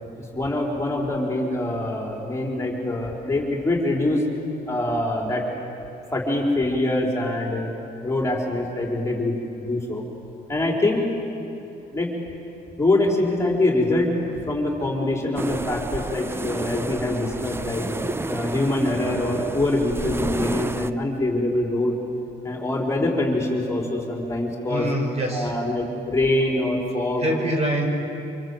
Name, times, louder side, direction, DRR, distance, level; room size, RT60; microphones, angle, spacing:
voice 1, 0.3-4.2 4.7-5.4 6.1-7.7 8.0-10.0 10.5-11.0 11.9-12.1 12.8-14.2 14.5-17.9 18.3-21.9 22.4-24.9 25.3-27.3, left 1 dB, 15° left, -1 dB, 4.4 m, -24 dB
sound 1, 15.4-20.9, right 2 dB, 15° right, 0.7 m, -31 dB
voice 2, 24.7-25.5 27.2-27.9, right 1 dB, 40° right, 2 dB, 5.1 m, -24 dB
26.0 x 23.5 x 8.1 m, 2.8 s
cardioid pair, 110°, 17 cm